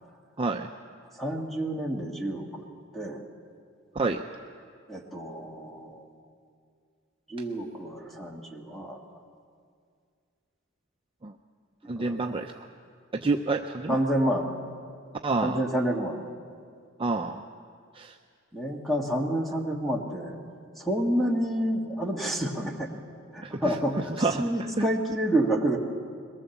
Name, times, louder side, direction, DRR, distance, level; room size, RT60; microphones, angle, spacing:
voice 1, 0.4-0.7 3.9-4.2 11.2-11.3 11.9-12.5 13.1-14.0 15.2-15.6 17.0-17.4 17.9-18.1 23.4-23.8 24.2-24.4 24.8-24.9, right 3 dB, 25° right, 4 dB, 0.5 m, -28 dB
voice 2, 1.2-2.6 2.9-3.2 4.9-6.1 7.3-9.0 12.0-12.3 13.9-14.5 15.4-16.3 18.5-20.4 20.8-22.9 23.3-25.8, right 1 dB, ahead, 1 dB, 1.8 m, -29 dB
22.0 x 19.0 x 7.1 m, 2.2 s
head